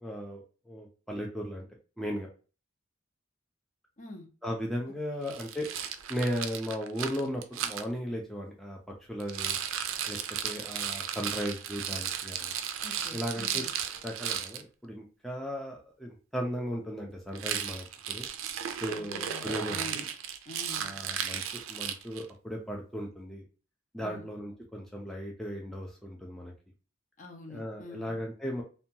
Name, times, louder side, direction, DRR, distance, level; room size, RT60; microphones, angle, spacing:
voice 1, 0.0-1.6 2.0-2.3 4.4-5.7 6.1-8.8 9.1-9.6 10.1-10.2 10.4-12.5 13.1-13.6 14.0-18.3 18.8-20.0 20.8-21.4 21.7-23.4 23.9-26.5 27.5-28.6, equal, ahead, -1 dB, 0.4 m, -36 dB
voice 2, 4.0-4.3 12.8-13.7 18.9-20.1 20.5-20.9 24.0-24.3 27.2-28.2, left 2 dB, 40° left, 3 dB, 0.6 m, -45 dB
Rattle, 5.3-7.8 9.2-14.6 17.3-22.3, right 9 dB, 90° right, 0.4 m, -35 dB
2.7 x 2.2 x 2.7 m, 0.36 s
head